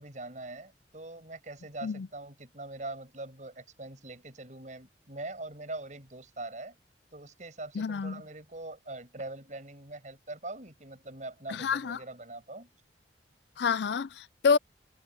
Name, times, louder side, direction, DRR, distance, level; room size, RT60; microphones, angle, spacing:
voice 1, 0.0-6.8 7.1-12.7, right 2 dB, 45° right, 6.9 m, -42 dB
voice 2, 7.8-8.2 11.5-12.0 13.6-14.6, left 5 dB, 70° left, 0.4 m, -28 dB
head